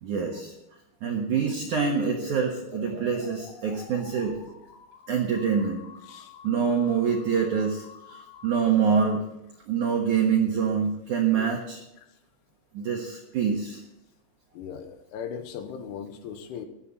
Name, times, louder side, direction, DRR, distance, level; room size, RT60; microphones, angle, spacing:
voice 1, 0.0-0.5 1.0-4.4 5.1-5.8 6.4-9.2 9.7-11.8 12.7-13.8, right 6 dB, 75° right, 0 dB, 1.8 m, -25 dB
sound 1, 1.3-9.2, left 5 dB, 60° left, 2.6 m, -45 dB
voice 2, 14.5-16.7, left 7 dB, 80° left, 8 dB, 3.4 m, -38 dB
17.0 x 12.0 x 4.1 m, 0.86 s
omnidirectional pair, 5.8 m